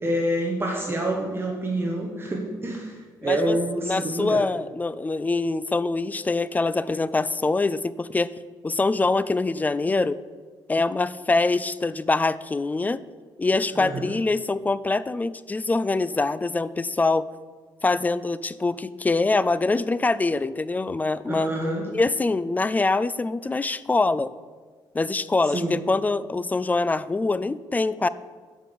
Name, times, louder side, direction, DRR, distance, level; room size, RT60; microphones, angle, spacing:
voice 1, 0.0-4.4 13.7-14.2 21.3-21.9 25.4-25.8, right 1 dB, 25° right, 0 dB, 1.2 m, -27 dB
voice 2, 3.2-3.6 3.8-8.3 8.6-10.2 10.7-13.0 13.4-17.2 17.8-21.5 21.9-24.3 24.9-28.1, left 3 dB, 20° left, 16 dB, 0.3 m, -24 dB
7.5 x 5.4 x 6.8 m, 1.5 s
cardioid pair, 90°, 8 cm